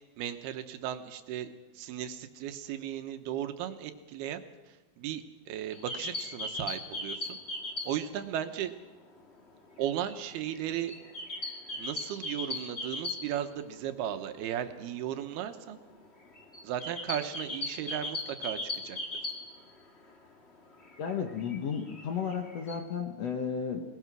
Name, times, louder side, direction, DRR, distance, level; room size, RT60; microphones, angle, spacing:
voice 1, 0.2-1.5 1.7-4.4 5.0-7.4 7.8-8.7 9.8-10.9 11.8-15.8 16.6-18.6 18.8-19.0, right 10 dB, 90° right, 8 dB, 3.1 m, -35 dB
sound 1, 5.7-8.2 8.4-8.5 8.8-13.7 14.0-14.1 14.4-14.6 15.1-20.1 20.5-22.8, left 2 dB, 30° left, 1.1 m, -39 dB
voice 2, 21.0-23.8, left 6 dB, 60° left, 4 dB, 2.0 m, -33 dB
22.0 x 19.5 x 6.2 m, 1.2 s
omnidirectional pair, 4.4 m